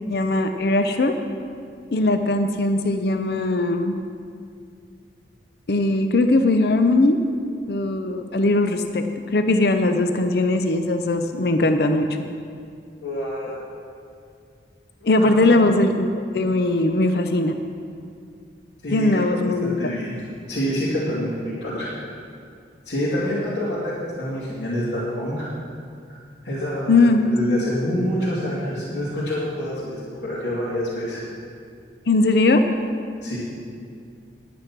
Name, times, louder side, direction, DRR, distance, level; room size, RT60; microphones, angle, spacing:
voice 1, 0.1-1.1 1.9-3.9 5.7-7.2 7.7-9.0 9.3-12.1 15.1-17.5 18.9-19.9 26.9-27.6 32.1-32.6, left 2 dB, 60° left, 7 dB, 0.6 m, -20 dB
voice 2, 13.0-13.6 15.0-15.6 18.8-20.1 20.5-22.1 22.9-25.5 26.4-31.2 33.2-33.4, equal, 75° left, -9 dB, 2.5 m, -27 dB
10.5 x 9.5 x 6.0 m, 2.3 s
head